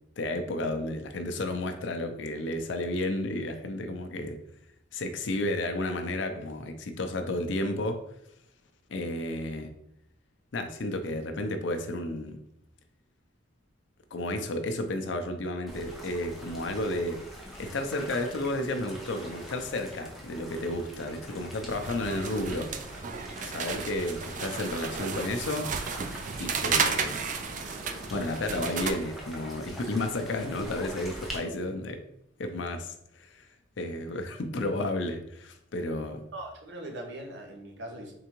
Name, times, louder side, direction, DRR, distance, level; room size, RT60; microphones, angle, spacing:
voice 1, 0.2-4.4 4.9-8.0 8.9-9.7 10.5-12.4 14.1-17.2 17.6-22.7 23.4-25.7 26.4-27.2 28.1-32.0 32.4-33.4 33.8-36.2, left 1 dB, 65° left, 6 dB, 0.5 m, -32 dB
sound 1, 15.7-31.4, equal, ahead, 0.6 m, -44 dB
sound 2, 21.7-28.9, right 5 dB, 40° right, 0.3 m, -33 dB
voice 2, 36.3-38.1, right 1 dB, 65° right, 1 dB, 0.9 m, -41 dB
3.7 x 3.4 x 3.0 m, 0.77 s
head